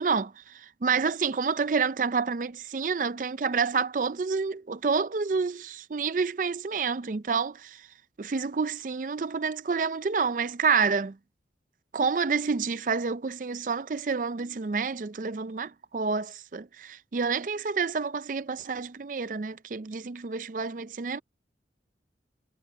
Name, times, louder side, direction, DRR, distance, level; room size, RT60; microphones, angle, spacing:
voice 1, 0.0-7.9 8.2-11.2 11.9-21.2, right 5 dB, 45° right, 0.4 m, -28 dB
head